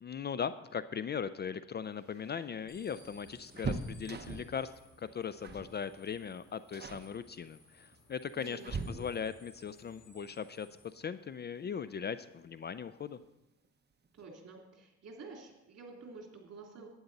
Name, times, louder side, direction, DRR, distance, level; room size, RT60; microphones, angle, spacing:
voice 1, 0.0-4.7 5.0-13.2, left 7 dB, 35° left, 14 dB, 0.4 m, -39 dB
sound 1, 1.9-4.6 5.4-5.8 6.0-6.3 6.7-7.1 7.9-9.4 11.1-11.2 11.6-11.7 12.9-13.3 13.6-13.7 14.0-14.2, right 4 dB, 35° right, 1.0 m, -41 dB
sound 2, 2.7-10.9, left 2 dB, 70° left, 4.7 m, -61 dB
voice 2, 8.3-9.1 14.1-16.9, right 4 dB, 55° right, 0 dB, 3.0 m, -50 dB
12.0 x 9.4 x 4.1 m, 0.90 s
cardioid pair, 90°, 30 cm